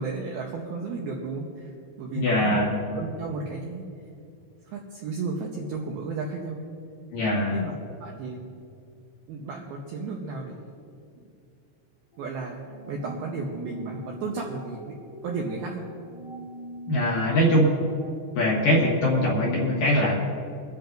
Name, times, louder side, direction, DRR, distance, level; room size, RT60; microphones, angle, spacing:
voice 1, 0.0-1.7 2.0-2.6 2.9-3.9 4.7-6.6 7.5-7.7 8.0-8.5 9.3-10.6 12.2-15.9, right 4 dB, 80° right, -1 dB, 2.2 m, -33 dB
voice 2, 2.1-2.8 7.1-7.6 16.9-17.7 18.4-20.2, equal, 60° left, -4 dB, 2.5 m, -22 dB
sound 1, 12.1-18.9, right 1 dB, 40° left, 1.0 m, -42 dB
25.5 x 10.5 x 2.6 m, 2.4 s
omnidirectional pair, 5.7 m